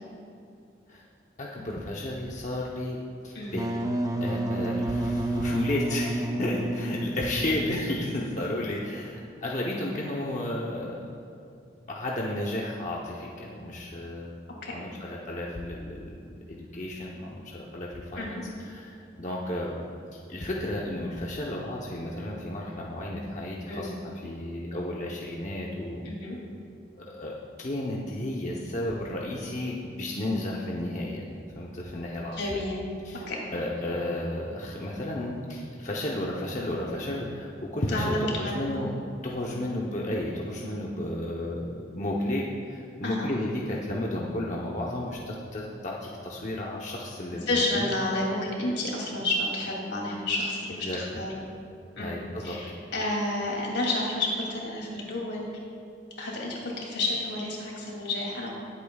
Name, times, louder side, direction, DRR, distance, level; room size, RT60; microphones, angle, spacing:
voice 1, 1.4-3.0 3.2-3.7 4.2-11.1 11.9-14.3 14.7-19.8 20.1-23.9 24.2-26.1 26.9-27.3 27.6-31.2 31.5-32.3 33.0-33.2 33.5-38.9 39.2-47.9 50.8-51.2 52.0-52.6, left 1 dB, 40° left, -3 dB, 0.9 m, -33 dB
Wind instrument woodwind instrument, 3.5-8.0, right 1 dB, 20° right, 0.6 m, -30 dB
voice 2, 26.0-26.4 32.3-32.8 33.3-33.4 37.9-38.8 39.5-39.7 43.0-43.3 47.3-51.3 52.0-52.2 52.4-55.4 56.2-58.5, left 2 dB, 75° left, -3 dB, 2.8 m, -30 dB
20.0 x 8.4 x 2.4 m, 2.5 s
head